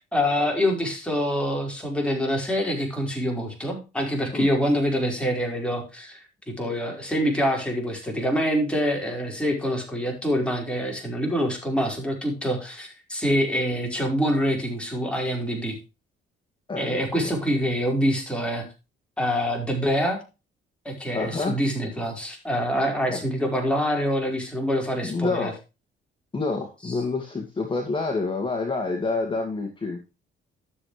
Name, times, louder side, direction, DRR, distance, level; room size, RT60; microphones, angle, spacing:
voice 1, 0.0-6.2 6.5-15.8 16.8-18.6 19.2-20.2 20.8-25.5, equal, 5° left, 0 dB, 4.8 m, -25 dB
voice 2, 16.7-17.4 21.1-21.6 23.1-23.2 25.0-25.5 26.3-30.1, left 3 dB, 25° left, 2 dB, 2.1 m, -28 dB
12.5 x 7.6 x 3.3 m, 0.28 s
cardioid pair, 90°, 20 cm